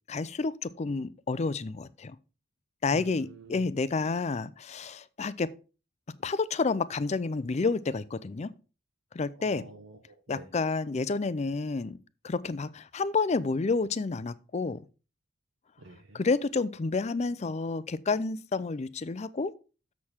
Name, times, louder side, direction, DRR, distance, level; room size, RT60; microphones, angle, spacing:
voice 1, 0.1-2.2 2.8-5.5 6.2-8.5 9.1-9.6 10.3-12.0 12.2-14.8 16.1-19.5, left 4 dB, 30° left, 0.4 m, -30 dB
voice 2, 2.9-3.7 9.4-10.5 15.8-16.2, right 3 dB, 75° right, 1.0 m, -47 dB
7.1 x 6.6 x 4.4 m
head